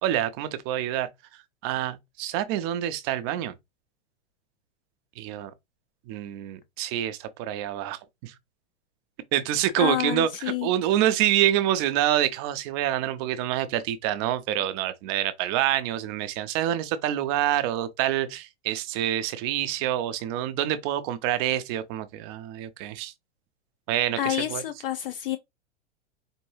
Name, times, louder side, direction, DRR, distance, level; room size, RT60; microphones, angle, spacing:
voice 1, 0.0-1.1 1.6-3.5 5.2-5.5 6.1-8.3 9.3-10.3 10.6-23.1 23.9-24.6, right 12 dB, 25° right, 0.4 m, -27 dB
voice 2, 9.8-10.7 24.2-25.4, left 12 dB, 50° left, 0.5 m, -28 dB
4.4 x 2.7 x 2.9 m
figure-of-eight pair, 95°, 36 cm